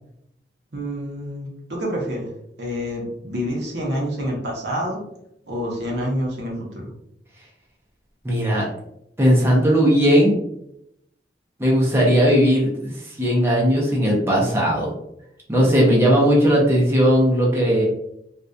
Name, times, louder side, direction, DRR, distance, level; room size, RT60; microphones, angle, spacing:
voice 1, 0.7-2.3 2.6-5.0 5.5-6.7, equal, 75° right, -2 dB, 0.8 m, -27 dB
voice 2, 8.2-8.7 9.2-10.4 11.6-12.9 13.2-14.9 15.5-17.9, equal, 15° right, -4 dB, 0.5 m, -17 dB
2.6 x 2.3 x 2.2 m, 0.78 s
head